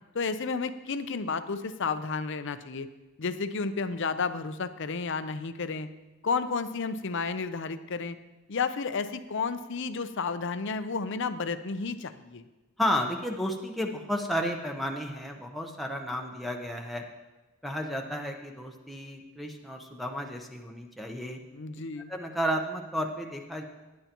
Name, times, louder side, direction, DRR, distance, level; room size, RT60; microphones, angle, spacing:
voice 1, 0.1-2.9 3.2-5.9 6.2-8.2 8.5-12.4 21.5-22.1, left 4 dB, 60° left, 11 dB, 0.6 m, -32 dB
voice 2, 12.8-17.0 17.6-21.4 22.1-23.6, equal, ahead, 0 dB, 0.8 m, -32 dB
17.0 x 10.5 x 3.0 m, 1.1 s
head